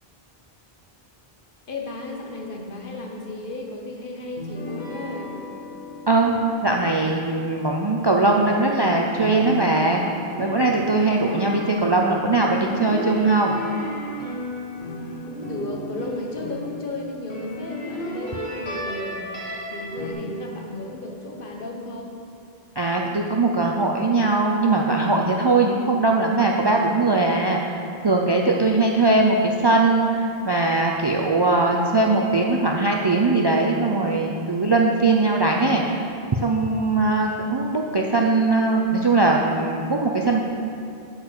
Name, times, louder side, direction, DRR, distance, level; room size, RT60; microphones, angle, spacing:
voice 1, 1.7-5.4 15.2-19.2 19.7-22.1 28.6-29.0, left 2 dB, 60° left, 0 dB, 1.2 m, -34 dB
sound 1, 4.4-8.7 9.2-16.9 17.3-20.1, left 1 dB, 85° left, 1.8 m, -34 dB
voice 2, 6.6-10.0 10.4-13.6 22.8-36.2 36.4-40.4, right 3 dB, 40° right, 0 dB, 0.4 m, -20 dB
8.2 x 4.6 x 6.6 m, 2.6 s
omnidirectional pair, 1.0 m